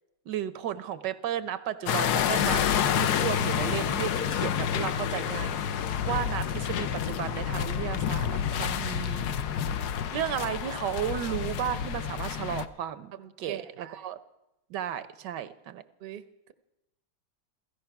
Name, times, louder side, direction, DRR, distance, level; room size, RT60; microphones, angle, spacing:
voice 1, 0.3-5.6 6.1-9.5 10.1-13.1 13.4-14.2 14.7-15.8, right 10 dB, 75° right, 13 dB, 1.3 m, -34 dB
sound 1, 1.9-12.7, left 9 dB, 65° left, 1.2 m, -29 dB
voice 2, 13.1-14.0 16.0-16.2, right 11 dB, 50° right, 10 dB, 0.7 m, -41 dB
15.5 x 15.5 x 5.8 m, 0.92 s
omnidirectional pair, 2.0 m